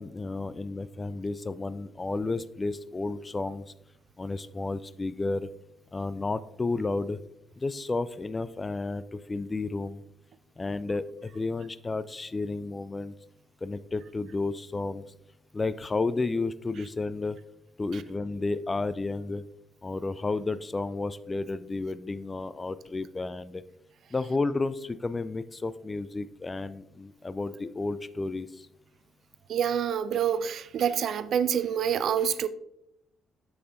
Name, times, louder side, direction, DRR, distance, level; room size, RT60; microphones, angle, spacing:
voice 1, 0.0-3.7 4.2-5.5 5.9-7.2 7.6-10.0 10.6-13.1 13.6-15.0 15.5-17.4 17.8-19.4 19.8-23.6 24.1-28.7, left 3 dB, 25° left, 15 dB, 0.3 m, -32 dB
voice 2, 29.5-32.5, right 8 dB, 55° right, 14 dB, 0.4 m, -27 dB
7.0 x 6.6 x 2.6 m, 0.82 s
figure-of-eight pair, 45°, 0 cm